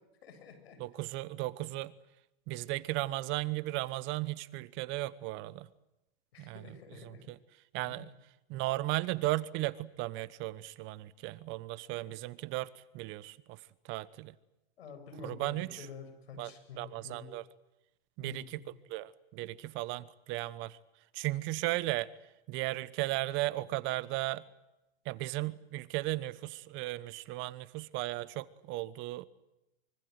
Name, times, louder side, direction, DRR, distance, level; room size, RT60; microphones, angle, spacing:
voice 1, 0.2-0.8 6.3-7.2 7.8-8.1 14.8-17.3 18.2-18.7, left 5 dB, 80° left, 7.8 m, -49 dB
voice 2, 0.8-1.9 2.5-5.7 6.4-6.6 7.0-7.4 7.7-8.1 8.5-13.6 13.9-14.3 15.2-15.9 16.4-16.5 16.8-17.4 18.2-18.6 18.9-20.8 21.1-22.1 22.5-24.4 25.0-29.3, right 18 dB, 40° right, 1.1 m, -36 dB
24.5 x 24.0 x 8.0 m
hypercardioid pair, 130°, 30 cm